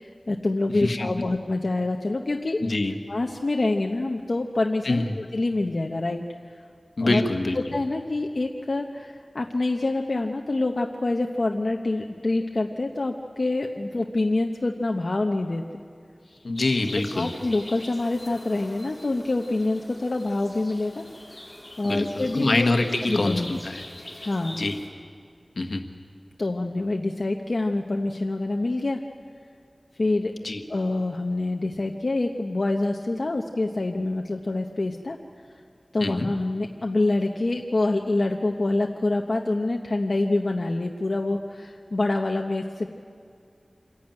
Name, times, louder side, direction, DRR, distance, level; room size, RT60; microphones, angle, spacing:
voice 1, 0.0-2.6 3.1-6.2 7.0-7.2 7.7-15.8 16.3-16.4 17.1-21.0 21.8-22.7 23.1-23.5 24.2-24.6 26.4-29.0 30.0-30.3 30.7-35.2 35.9-42.9, left 2 dB, 65° left, 2 dB, 0.9 m, -26 dB
voice 2, 0.7-1.1 2.6-3.0 4.8-5.2 7.0-7.6 16.4-17.3 21.8-23.8 24.6-24.8 25.6-25.9 30.4-30.6 36.0-36.3, left 2 dB, 80° left, 5 dB, 1.4 m, -25 dB
sound 1, 16.5-24.9, left 1 dB, 30° left, 4.1 m, -42 dB
27.0 x 11.5 x 9.0 m, 2.3 s
wide cardioid pair, 65°, 0 cm